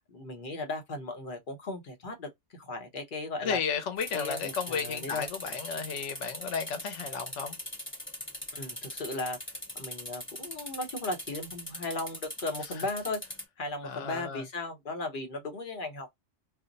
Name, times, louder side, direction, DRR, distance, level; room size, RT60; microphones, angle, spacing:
voice 1, 0.1-3.6 4.1-5.3 8.5-9.4 9.7-13.2 13.6-16.1, left 2 dB, 50° left, 0.9 m, -36 dB
voice 2, 3.4-7.6 12.6-12.9 13.8-14.5, left 6 dB, 85° left, 1.0 m, -34 dB
sound 1, 4.0-13.4, left 1 dB, 10° left, 1.0 m, -41 dB
2.6 x 2.0 x 3.8 m
omnidirectional pair, 1.2 m